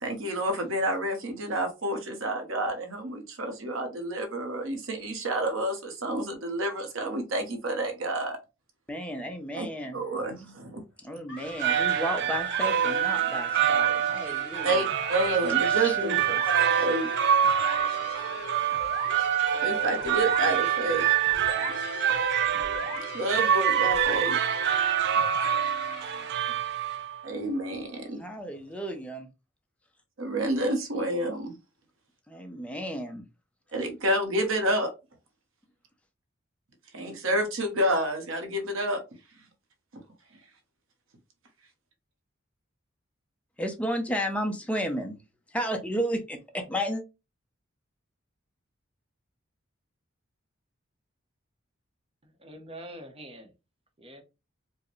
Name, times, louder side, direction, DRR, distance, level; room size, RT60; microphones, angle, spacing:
voice 1, 0.0-8.4 9.5-9.7 9.9-10.8 14.6-17.1 19.6-21.1 23.1-24.4 27.2-28.2 30.2-31.6 33.7-34.9 36.9-39.0, right 1 dB, 80° right, 1.0 m, -29 dB
voice 2, 8.9-10.0 11.0-14.8 15.7-16.4 16.8-16.9 26.5-26.6 28.2-29.3 32.3-33.3 43.6-45.2 45.5-47.0, equal, 5° left, 0.6 m, -33 dB
sound 1, 11.3-26.4, left 4 dB, 65° left, 1.2 m, -40 dB
sound 2, 11.4-27.3, right 9 dB, 60° right, 0.4 m, -26 dB
voice 3, 52.2-53.5 54.0-54.2, right 1 dB, 30° right, 0.8 m, -44 dB
4.6 x 2.1 x 3.1 m
head